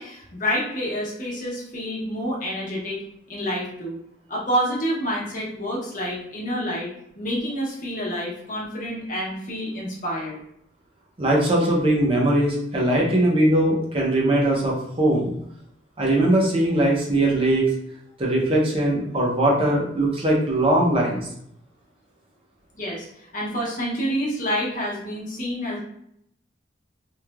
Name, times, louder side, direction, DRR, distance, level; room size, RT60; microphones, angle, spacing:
voice 1, 0.0-3.0 3.3-4.0 4.3-6.9 7.1-10.4 22.7-25.8, equal, 45° left, -5 dB, 0.9 m, -28 dB
voice 2, 11.2-15.3 16.0-17.7 18.2-21.3, right 1 dB, 30° right, -3 dB, 0.7 m, -20 dB
3.1 x 2.4 x 2.2 m, 0.73 s
head